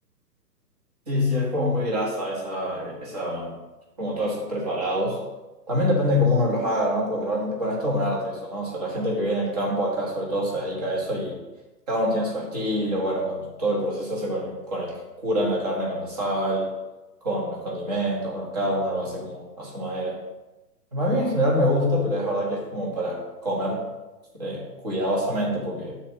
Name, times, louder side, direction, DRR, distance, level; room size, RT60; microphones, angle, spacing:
voice 1, 1.1-3.5 4.0-5.2 5.7-11.4 11.9-16.7 17.2-20.2 20.9-23.9 24.3-26.0, equal, 25° right, -3 dB, 1.4 m, -26 dB
7.6 x 4.2 x 6.3 m, 1.1 s
hypercardioid pair, 180°, 49 cm